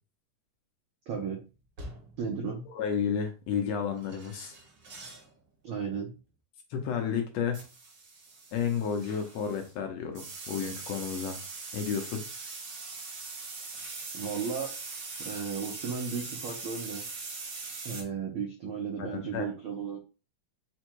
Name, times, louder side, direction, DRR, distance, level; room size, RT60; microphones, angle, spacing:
voice 1, 1.1-1.4 2.2-2.6 5.6-6.1 13.6-13.7 14.1-17.0 17.8-20.0, right 6 dB, 90° right, 1 dB, 1.1 m, -35 dB
sound 1, 1.8-2.3 4.0-5.3 5.7-5.9 7.5-9.7 10.1-18.0, right 3 dB, 60° right, 1.1 m, -42 dB
voice 2, 2.7-4.5 6.7-7.6 8.5-11.4 11.7-12.2 19.0-19.5, left 7 dB, 75° left, 4 dB, 1.6 m, -31 dB
5.1 x 2.2 x 4.5 m, 0.32 s
omnidirectional pair, 3.5 m